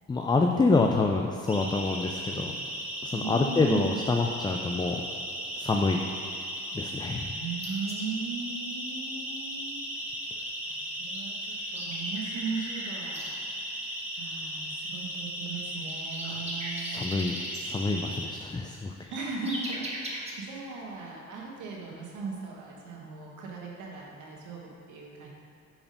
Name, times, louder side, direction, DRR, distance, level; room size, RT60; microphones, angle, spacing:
voice 1, 0.1-2.5 3.0-5.0 5.6-6.0 6.7-7.3 16.2-19.1, left 3 dB, 15° left, 2 dB, 0.3 m, -27 dB
Siren, 1.5-18.2, equal, 5° right, 1.2 m, -36 dB
voice 2, 3.1-4.0 7.3-9.8 10.6-13.8 14.2-17.1 19.1-25.3, right 4 dB, 80° right, -2 dB, 1.3 m, -38 dB
sound 1, 7.6-8.0 10.7-10.8 11.0-13.3 15.5-17.6 18.5-20.3, right 1 dB, 20° right, 1.4 m, -39 dB
5.3 x 4.9 x 5.2 m, 2.5 s
cardioid pair, 90°, 30 cm